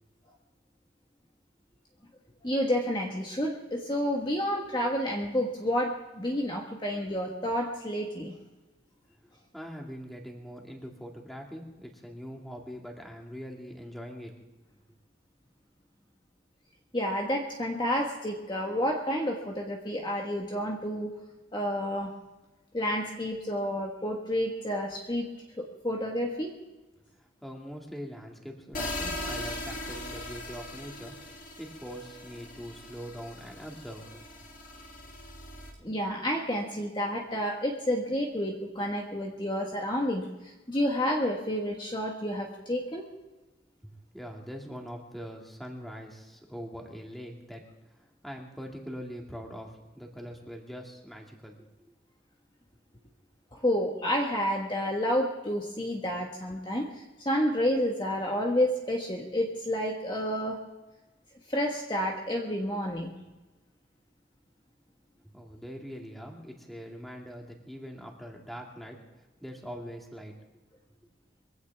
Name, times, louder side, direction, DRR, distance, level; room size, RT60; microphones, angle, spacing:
voice 1, 2.4-8.3 16.9-21.1 21.5-22.1 22.7-25.3 25.8-26.5 35.8-43.1 53.5-60.6 61.5-63.1, equal, 25° left, 0 dB, 1.5 m, -30 dB
voice 2, 9.5-14.3 27.2-31.2 31.6-34.2 44.1-48.0 48.2-51.9 65.3-69.0 69.4-70.3, equal, ahead, 0 dB, 2.3 m, -42 dB
sound 1, 28.7-35.7, left 1 dB, 45° left, 2.8 m, -40 dB
23.0 x 16.0 x 3.6 m, 1.1 s
head